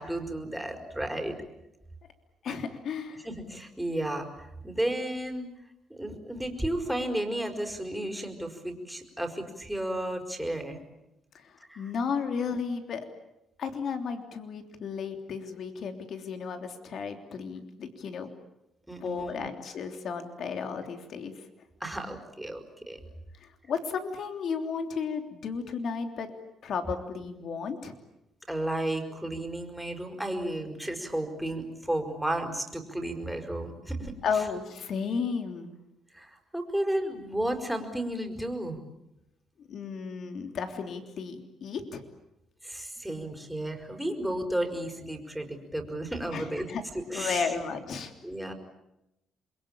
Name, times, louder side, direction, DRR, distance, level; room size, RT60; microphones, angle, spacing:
voice 1, 0.0-1.3 3.2-5.5 5.9-10.8 11.7-11.9 18.9-19.5 21.8-23.0 28.5-34.1 36.1-38.8 42.6-46.7 47.1-47.5 48.2-48.5, right 1 dB, 5° right, 4 dB, 4.9 m, -33 dB
voice 2, 2.4-3.2 11.4-13.1 13.6-18.3 19.0-21.3 23.4-26.3 26.6-27.9 34.2-35.8 39.7-42.0 46.3-46.8 47.1-48.1, left 5 dB, 65° left, 6 dB, 3.3 m, -33 dB
27.5 x 22.5 x 8.9 m, 0.89 s
cardioid pair, 90°, 0 cm